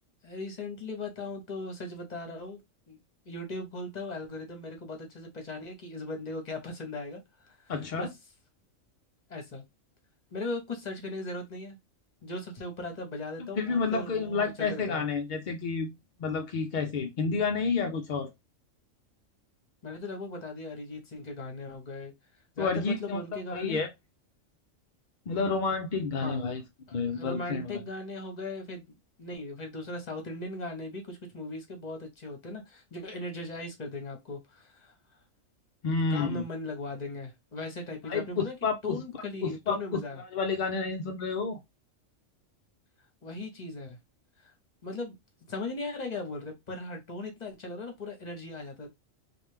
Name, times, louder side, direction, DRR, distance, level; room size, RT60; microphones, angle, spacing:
voice 1, 0.2-2.6 2.9-3.0 3.3-8.1 9.3-9.6 10.3-11.8 12.2-15.0 19.8-22.1 22.6-23.8 26.2-26.5 26.9-34.9 35.8-38.6 38.8-40.2 43.2-44.0 44.8-45.2 45.5-48.9, left 2 dB, 35° left, 1.0 m, -38 dB
voice 2, 7.7-8.1 13.4-15.9 16.2-18.3 22.6-23.2 23.5-23.9 25.3-26.6 26.9-27.8 35.8-36.4 38.1-39.0 39.4-41.6, left 4 dB, 60° left, 0.5 m, -30 dB
3.2 x 2.5 x 3.2 m
omnidirectional pair, 1.3 m